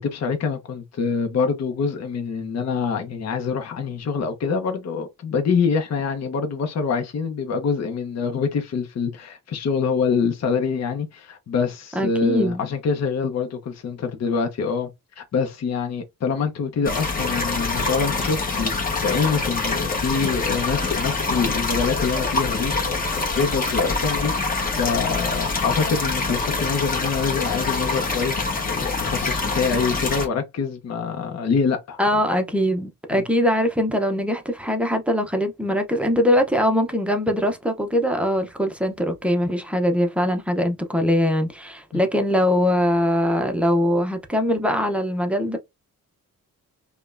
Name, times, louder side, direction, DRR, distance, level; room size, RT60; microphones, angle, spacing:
voice 1, 0.0-18.8 19.0-23.0 23.3-24.3 24.7-32.0 33.1-33.2 41.9-42.0, left 5 dB, 50° left, 0.8 m, -25 dB
voice 2, 12.0-12.7 32.0-45.6, equal, 5° right, 0.6 m, -22 dB
sound 1, 16.8-30.3, left 3 dB, 25° left, 1.0 m, -25 dB
5.0 x 2.2 x 2.4 m
wide cardioid pair, 135°, 34 cm